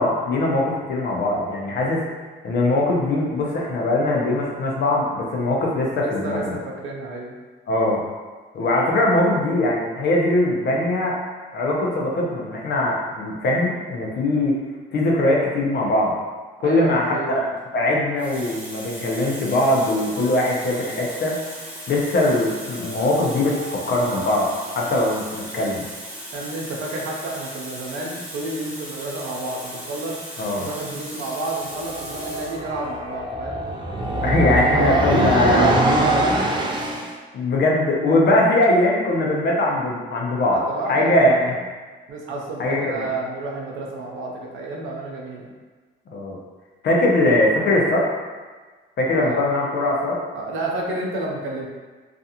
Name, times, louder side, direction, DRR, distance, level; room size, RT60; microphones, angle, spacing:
voice 1, 0.0-2.0 2.4-6.6 7.7-8.0 8.5-11.2 11.5-14.5 14.9-16.1 16.6-17.5 17.7-21.4 21.9-24.5 24.7-25.8 30.4-30.7 34.2-35.7 37.3-40.6 40.9-41.5 42.6-43.1 46.1-46.4 46.8-48.1 49.0-50.2, left 1 dB, 60° left, -2 dB, 0.6 m, -21 dB
voice 2, 6.0-7.4 16.6-17.4 26.3-30.2 30.6-33.6 34.1-36.3 40.5-41.5 42.1-45.5 49.2-49.5 50.3-51.7, right 2 dB, 80° right, -1 dB, 0.5 m, -30 dB
Water tap faucet, 17.4-17.6 18.2-32.7 33.6-33.7, right 1 dB, 5° right, 0.8 m, -37 dB
sound 1, 20.1-21.2 22.3-25.5, equal, 85° left, 1.1 m, -42 dB
sound 2, 31.6-37.1, right 2 dB, 25° right, 0.4 m, -23 dB
2.4 x 2.3 x 2.8 m, 1.4 s
cardioid pair, 90°, 20 cm